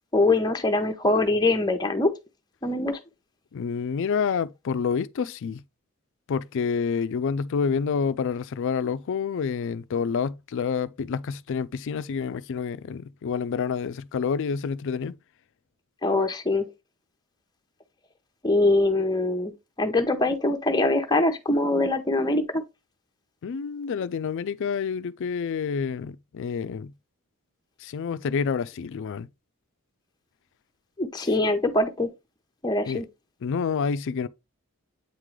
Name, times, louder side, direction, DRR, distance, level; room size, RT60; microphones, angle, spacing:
voice 1, 0.1-2.1 2.6-3.0 16.0-16.7 18.4-19.5 19.8-22.6 31.0-32.1 32.6-33.1, left 2 dB, 20° left, 0.8 m, -23 dB
voice 2, 3.5-5.6 6.3-15.1 23.4-26.9 27.8-29.3 32.8-33.0 33.4-34.3, left 6 dB, 60° left, 0.4 m, -28 dB
8.2 x 3.7 x 3.1 m
head